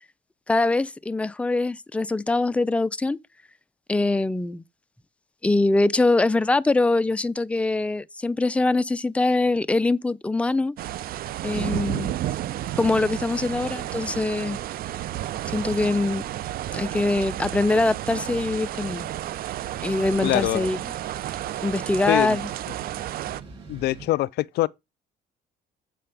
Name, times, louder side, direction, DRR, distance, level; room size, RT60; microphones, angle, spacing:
voice 1, 0.5-3.2 3.9-4.6 5.4-10.7 11.4-12.1 12.8-14.6 15.5-16.2 16.7-19.1 19.8-20.8 21.6-22.4, left 2 dB, 5° left, 0.5 m, -23 dB
sound 1, 10.8-23.4, right 13 dB, 60° right, 0.5 m, -32 dB
Mechanical fan, 11.8-24.1, right 4 dB, 30° right, 6.6 m, -48 dB
voice 2, 20.2-20.7 22.1-22.4 23.7-24.7, left 17 dB, 75° left, 0.4 m, -23 dB
7.7 x 5.0 x 5.8 m
cardioid pair, 110°, 17 cm